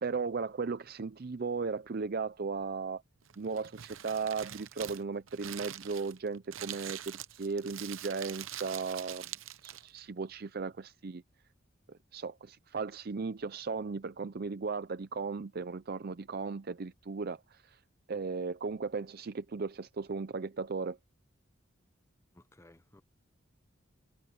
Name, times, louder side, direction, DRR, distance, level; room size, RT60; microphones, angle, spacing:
voice 1, 0.0-3.0 3.4-9.3 9.6-11.2 11.9-17.8 18.1-21.0, right 4 dB, 50° right, 0.5 m, -36 dB
Crumpling crinkling, 3.2-10.0, right 12 dB, 75° right, 0.8 m, -44 dB
voice 2, 22.3-23.0, left 1 dB, 15° left, 0.7 m, -59 dB
head